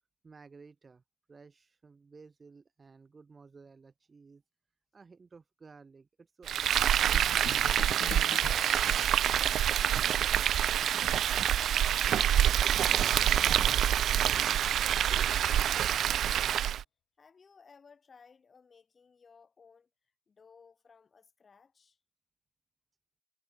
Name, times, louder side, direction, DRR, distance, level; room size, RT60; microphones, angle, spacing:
voice 1, 0.2-1.0 1.3-4.4 4.9-8.5, right 4 dB, 25° right, 2.2 m, -55 dB
Frying (food), 6.5-16.8, right 10 dB, 55° right, 0.4 m, -26 dB
sound 1, 7.1-10.9, left 11 dB, 60° left, 2.6 m, -45 dB
voice 2, 9.6-11.7 12.0-13.0 13.3-16.8 17.2-19.9 20.3-22.0, left 5 dB, 30° left, 7.5 m, -59 dB
cardioid pair, 95°, 0 cm